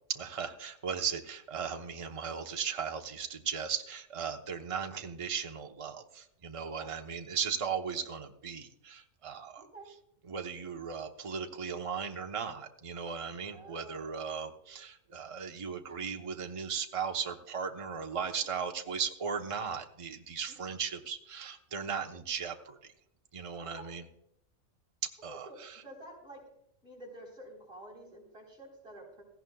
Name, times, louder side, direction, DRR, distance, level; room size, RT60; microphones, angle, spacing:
voice 1, 0.1-9.6 10.3-22.8 23.3-24.0 25.2-25.8, right 6 dB, 30° right, 4 dB, 0.8 m, -37 dB
voice 2, 9.6-9.9 13.5-14.2 18.3-18.5 20.5-20.8 23.6-23.9 25.3-25.6 25.8-26.4 26.8-29.2, right 1 dB, 45° right, -2 dB, 4.2 m, -50 dB
17.0 x 15.0 x 2.3 m, 0.76 s
omnidirectional pair, 1.4 m